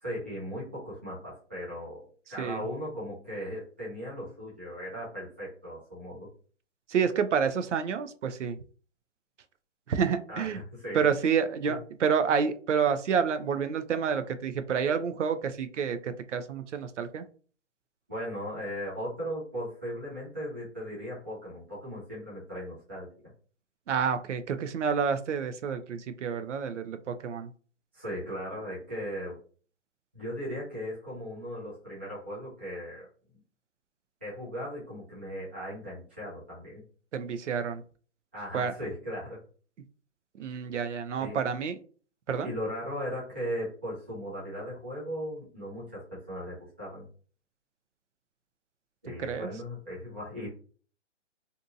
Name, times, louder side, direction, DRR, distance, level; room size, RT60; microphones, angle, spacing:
voice 1, 0.0-6.3 10.3-11.1 11.7-11.8 18.1-23.1 27.9-29.4 30.1-33.1 34.2-36.8 38.3-39.4 41.2-41.4 42.4-47.1 49.0-50.5, equal, 10° right, -9 dB, 0.4 m, -37 dB
voice 2, 6.9-8.6 9.9-10.6 10.9-17.2 23.9-27.5 37.1-37.8 38.5-38.7 40.4-41.8 42.3-42.5 49.2-49.5, right 6 dB, 75° right, 10 dB, 0.5 m, -29 dB
2.6 x 2.6 x 2.5 m, 0.42 s
hypercardioid pair, 145°, 37 cm